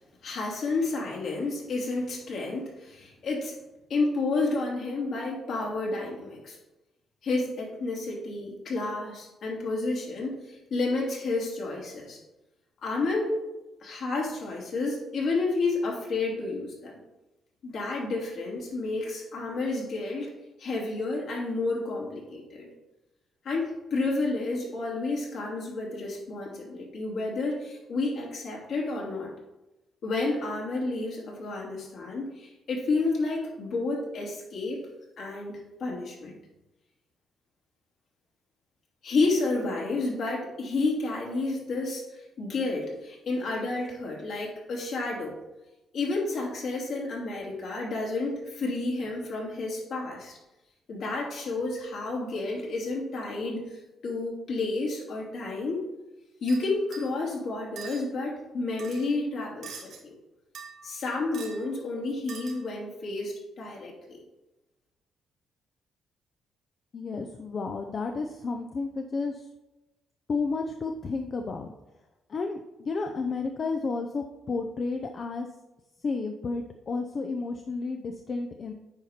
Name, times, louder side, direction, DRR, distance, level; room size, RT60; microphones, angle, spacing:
voice 1, 0.2-3.5 3.9-6.6 7.2-12.2 12.8-13.4 13.8-16.9 17.6-20.3 20.6-22.7 23.4-29.3 30.0-34.8 35.2-36.4 39.0-45.4 45.9-50.4 50.9-55.9 56.4-60.1 60.8-64.2, left 3 dB, 65° left, -2 dB, 2.9 m, -30 dB
sound 1, 56.5-57.2 57.8-58.0 58.8-59.1 59.6-60.0 60.5-61.0 61.3-61.6 62.3-62.7, right 6 dB, 70° right, 2.3 m, -44 dB
voice 2, 66.9-69.5 70.3-71.7 72.3-75.5 76.0-78.7, left 4 dB, 45° left, 4 dB, 0.7 m, -32 dB
9.0 x 5.0 x 4.4 m, 1.0 s
cardioid pair, 90°, 0 cm